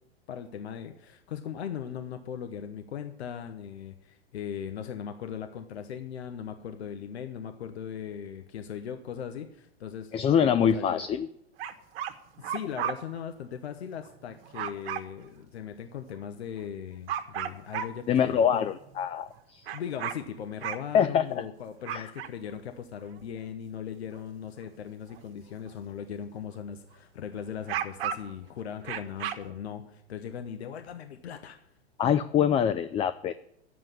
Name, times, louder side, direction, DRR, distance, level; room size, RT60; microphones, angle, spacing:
voice 1, 0.3-11.1 12.4-18.7 19.7-31.6, left 8 dB, 80° left, 8 dB, 1.1 m, -39 dB
voice 2, 10.1-11.3 18.1-19.7 20.9-21.2 21.9-22.1 32.0-33.3, left 8 dB, 20° left, 13 dB, 0.4 m, -24 dB
sound 1, 11.6-12.9 14.0-15.0 16.1-16.2 16.6-16.7 17.1-18.1 18.7-19.4 19.7-21.4 21.9-22.5 23.0-23.2 24.1-24.7 25.1-25.2 27.5-28.4 28.8-29.4, right 10 dB, 65° right, 1.3 m, -34 dB
10.0 x 7.5 x 9.2 m, 0.74 s
hypercardioid pair, 105°, 32 cm